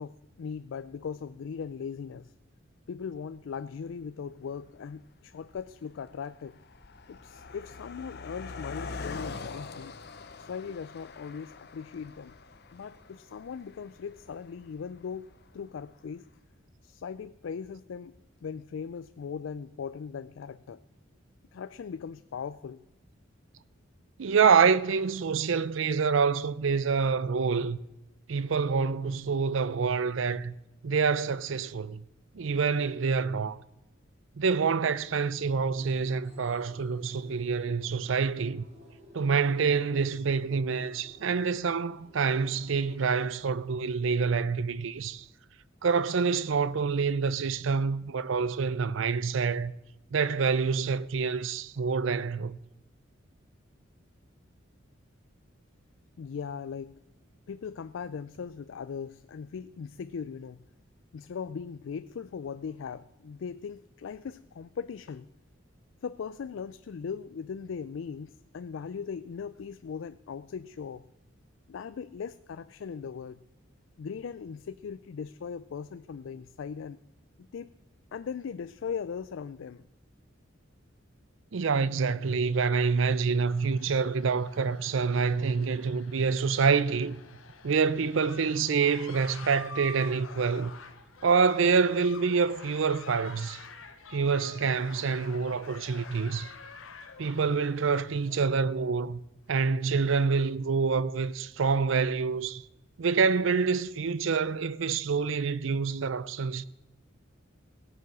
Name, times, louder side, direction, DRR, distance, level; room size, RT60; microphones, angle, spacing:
voice 1, 0.0-2.3 2.9-6.6 7.1-10.0 10.4-12.3 12.7-15.3 15.5-16.3 16.8-20.8 21.5-22.8 56.2-57.0 57.5-60.6 61.1-65.3 66.0-71.1 71.7-73.4 74.0-77.0 77.4-77.7 78.1-79.8, left 6 dB, 70° left, 0.4 m, -39 dB
Car passing by, 3.9-4.0 4.8-5.0 5.3-15.7, left 4 dB, 55° left, 0.8 m, -44 dB
voice 2, 24.2-27.8 28.3-30.5 30.8-32.0 32.3-33.6 34.4-38.6 39.1-45.2 45.8-49.7 50.1-52.6 81.5-87.2 87.6-90.7 91.2-93.6 94.1-96.5 97.2-99.2 99.5-102.6 103.0-106.6, right 5 dB, 70° right, 0.5 m, -27 dB
sound 1, 35.6-43.0, left 1 dB, 35° right, 2.8 m, -56 dB
sound 2, 82.9-98.5, left 5 dB, 85° left, 1.1 m, -48 dB
17.0 x 7.1 x 6.1 m
head